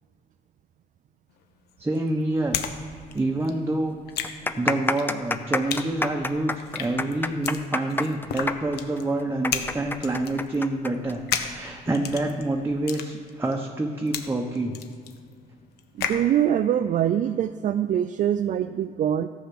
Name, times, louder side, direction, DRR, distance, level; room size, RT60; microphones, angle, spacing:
sound 1, 1.3-2.8 3.0-16.3, left 8 dB, 75° left, 1.1 m, -34 dB
voice 1, 1.8-2.6 2.9-4.0 4.5-14.7, right 2 dB, 15° right, 1 dB, 1.0 m, -27 dB
sound 2, 3.0-3.1 3.4-3.5 4.1-11.4 11.7-11.8 12.5-12.8, left 2 dB, 10° left, 0.6 m, -28 dB
voice 2, 16.0-19.3, right 10 dB, 50° right, 10 dB, 0.4 m, -23 dB
14.0 x 7.4 x 5.9 m, 2.2 s
cardioid pair, 110°, 17 cm